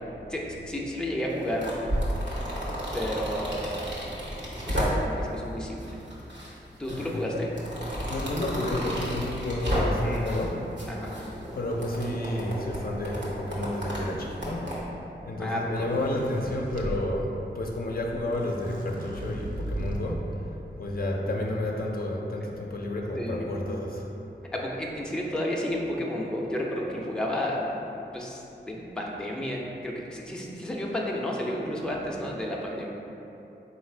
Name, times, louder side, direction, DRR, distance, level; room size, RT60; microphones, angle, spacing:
voice 1, 0.3-1.7 2.9-3.7 4.6-6.0 6.8-7.5 10.0-10.3 10.9-11.1 15.4-15.9 23.1-23.7 24.5-27.7 28.1-32.9, left 1 dB, 5° left, -3 dB, 0.5 m, -32 dB
sound 1, 1.3-5.3 5.8-6.5 6.8-10.5 10.8-14.8, equal, 75° right, 0.9 m, -32 dB
voice 2, 6.9-7.4 7.9-10.9 11.5-20.5 20.8-24.1, left 1 dB, 55° left, -1 dB, 0.5 m, -31 dB
sound 2, 13.8-15.0 15.7-17.0 17.9-18.0 18.1-20.2, right 1 dB, 50° right, 0.5 m, -37 dB
4.0 x 2.4 x 4.4 m, 2.9 s
wide cardioid pair, 65°, 18 cm